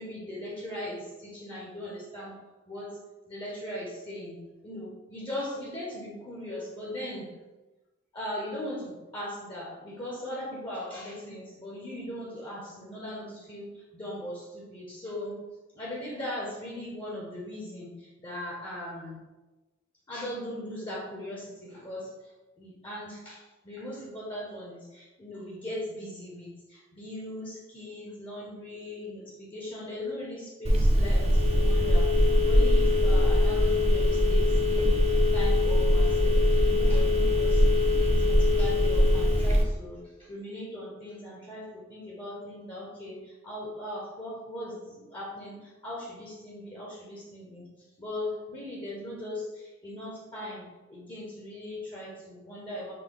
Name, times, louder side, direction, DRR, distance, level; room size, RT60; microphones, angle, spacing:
voice 1, 0.0-2.3 2.7-3.0 3.3-7.3 8.1-15.4 15.7-19.2 20.1-22.3 22.6-32.1 32.5-37.7 38.0-47.7 48.0-52.9, left 1 dB, 25° left, -5 dB, 0.9 m, -39 dB
Telephone, 30.7-39.6, left 1 dB, 30° right, 0.5 m, -22 dB
5.8 x 2.2 x 3.7 m, 1.1 s
head